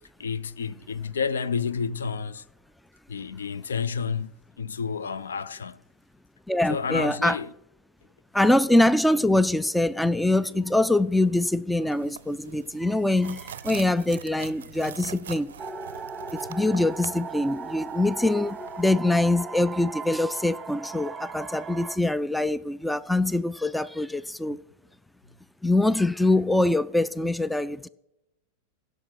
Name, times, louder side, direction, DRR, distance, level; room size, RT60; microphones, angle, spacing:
voice 1, 0.2-2.4 3.1-5.8 6.7-7.5, left 6 dB, 70° left, 0.5 m, -30 dB
voice 2, 6.5-7.4 8.3-15.5 16.5-24.6 25.6-27.9, left 2 dB, 5° left, 0.3 m, -24 dB
sound 1, 9.9-10.1 10.4-10.8 11.1-11.4 11.7-12.1 12.4-12.7 13.2-13.3 13.6-14.8 15.1-15.7 16.2-17.1, right 1 dB, 85° left, 3.2 m, -52 dB
sound 2, 11.9-19.0, right 9 dB, 65° right, 0.5 m, -44 dB
sound 3, 15.6-22.0, right 4 dB, 15° right, 0.8 m, -37 dB
16.0 x 6.3 x 5.8 m
figure-of-eight pair, 90°, 0 cm